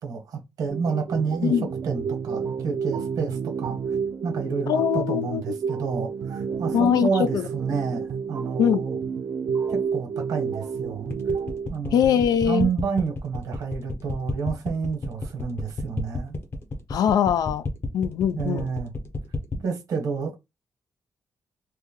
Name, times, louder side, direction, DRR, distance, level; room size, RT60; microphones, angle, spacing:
voice 1, 0.0-1.5 1.8-4.0 4.2-9.0 9.7-11.1 11.7-16.4 18.4-18.9 19.6-20.4, right 5 dB, 70° right, 1.1 m, -29 dB
sound 1, 0.7-11.7, right 6 dB, 55° right, 0.5 m, -30 dB
voice 2, 4.7-5.4 6.7-7.4 8.6-8.8 11.9-12.7 16.9-18.7, left 8 dB, 85° left, 0.4 m, -22 dB
sound 2, 11.1-19.6, left 4 dB, 40° left, 0.8 m, -31 dB
3.2 x 2.2 x 3.7 m
wide cardioid pair, 145°, 6 cm